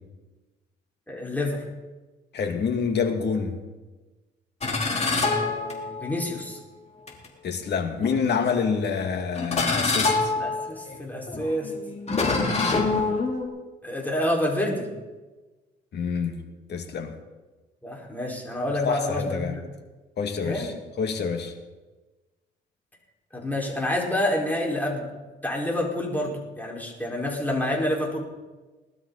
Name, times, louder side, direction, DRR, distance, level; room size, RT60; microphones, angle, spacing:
voice 1, 1.1-1.6 4.8-6.6 10.3-11.7 13.8-14.9 17.8-19.6 20.4-20.7 23.3-25.1 25.4-28.2, left 1 dB, 10° left, 4.8 m, -28 dB
voice 2, 2.3-3.6 7.4-10.3 15.9-16.4 16.7-17.1 18.8-19.6 20.2-21.5, left 6 dB, 60° left, 2.2 m, -27 dB
sound 1, 4.6-6.3 7.1-7.3 8.0-8.6 9.4-13.5, left 3 dB, 35° left, 3.3 m, -26 dB
20.5 x 12.5 x 4.1 m
cardioid pair, 90°, 20 cm